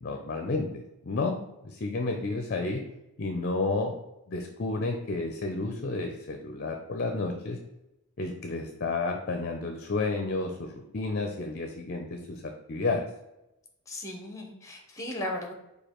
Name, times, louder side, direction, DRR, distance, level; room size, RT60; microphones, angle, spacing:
voice 1, 0.0-0.7 1.0-1.4 1.6-2.8 3.2-3.9 4.3-7.6 8.2-13.1, left 3 dB, 45° left, 4 dB, 0.5 m, -31 dB
voice 2, 13.9-15.5, left 1 dB, 15° left, 2 dB, 0.8 m, -36 dB
5.0 x 2.3 x 4.4 m, 0.89 s
head